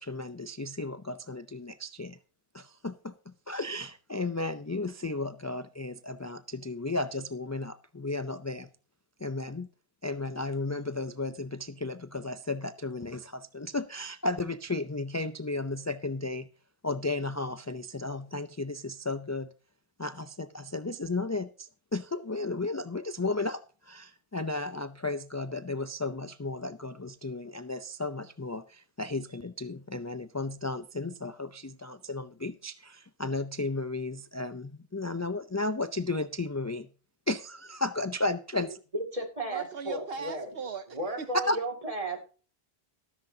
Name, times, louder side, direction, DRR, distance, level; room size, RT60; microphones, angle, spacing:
voice 1, 0.0-2.2 2.5-8.7 9.2-9.7 10.0-16.5 16.8-19.5 20.0-36.9 37.3-38.8 41.5-41.6, left 2 dB, 25° left, 0.4 m, -34 dB
voice 2, 38.9-40.5 40.9-42.2, right 2 dB, 35° right, 2.6 m, -34 dB
voice 3, 39.5-41.3, right 5 dB, 70° right, 1.0 m, -39 dB
13.5 x 13.0 x 2.8 m
omnidirectional pair, 1.1 m